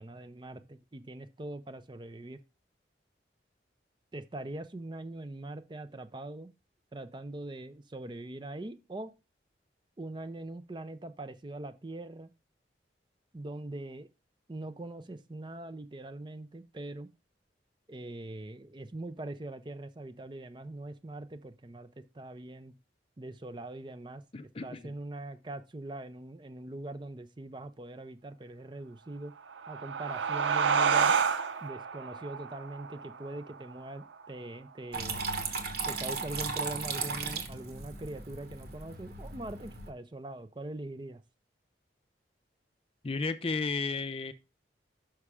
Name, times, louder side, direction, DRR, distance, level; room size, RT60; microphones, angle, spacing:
voice 1, 0.0-2.4 4.1-6.5 6.9-9.1 10.0-12.3 13.3-14.1 14.5-17.1 17.9-22.7 23.2-29.3 29.7-31.2 31.6-35.2 35.8-41.2, right 2 dB, 25° right, 0.5 m, -42 dB
voice 2, 24.3-24.8 43.0-44.3, left 4 dB, 30° left, 0.5 m, -33 dB
sound 1, 29.4-34.6, right 6 dB, 90° right, 0.6 m, -30 dB
Water tap faucet / Trickle dribble, 34.9-39.9, right 4 dB, 55° right, 1.2 m, -36 dB
6.0 x 5.6 x 4.8 m
head